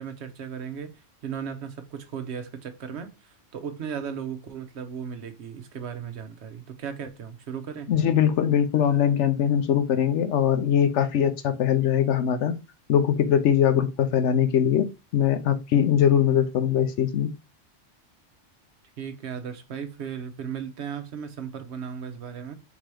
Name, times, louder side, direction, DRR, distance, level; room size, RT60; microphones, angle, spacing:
voice 1, 0.0-7.9 19.0-22.6, right 7 dB, 65° right, 1.0 m, -36 dB
voice 2, 7.9-12.5 12.9-14.9 15.1-17.3, left 9 dB, 75° left, 0.9 m, -21 dB
3.7 x 2.9 x 4.7 m
omnidirectional pair, 1.3 m